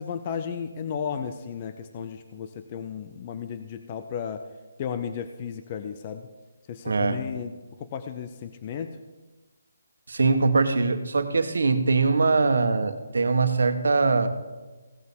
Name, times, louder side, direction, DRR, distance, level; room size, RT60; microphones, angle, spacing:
voice 1, 0.0-4.4 4.8-6.3 6.7-9.0, left 7 dB, 20° left, 9 dB, 0.4 m, -34 dB
voice 2, 6.8-7.2 10.1-14.3, right 4 dB, 70° right, 8 dB, 1.3 m, -22 dB
16.5 x 6.5 x 7.0 m, 1.2 s
hypercardioid pair, 180°, 0 cm